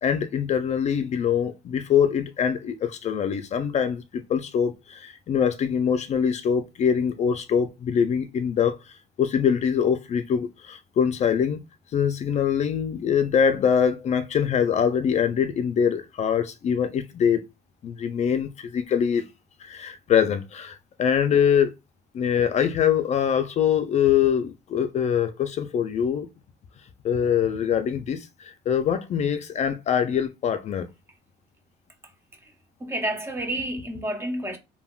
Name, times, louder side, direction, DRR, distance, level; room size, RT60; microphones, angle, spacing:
voice 1, 0.0-8.8 9.2-11.6 11.9-17.4 17.8-19.2 19.6-21.7 22.1-26.3 27.0-30.9, left 8 dB, 40° left, 0.4 m, -23 dB
voice 2, 32.8-34.6, right 1 dB, 15° right, 0.6 m, -29 dB
3.4 x 2.2 x 2.3 m
cardioid pair, 110°, 17 cm